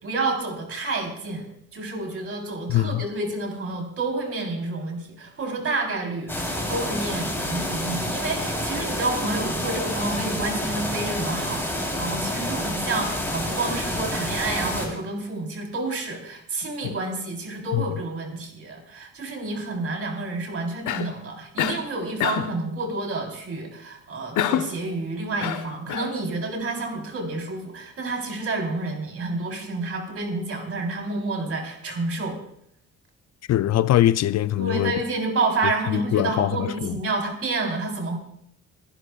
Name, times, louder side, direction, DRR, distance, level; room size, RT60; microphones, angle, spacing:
voice 1, 0.0-1.5 1.7-32.4 34.6-38.2, right 3 dB, 50° right, 3.9 m, -29 dB
voice 2, 2.7-3.0 17.7-17.8 33.5-34.9 35.9-37.0, left 13 dB, 60° left, 0.4 m, -22 dB
sound 1, 6.3-14.9, left 1 dB, 10° left, 3.5 m, -28 dB
Cough, 20.9-21.2 21.6-21.9 22.2-22.6 24.4-24.8 25.4-26.1, left 11 dB, 80° left, 0.8 m, -26 dB
27.0 x 11.0 x 2.4 m
cardioid pair, 90°, 30 cm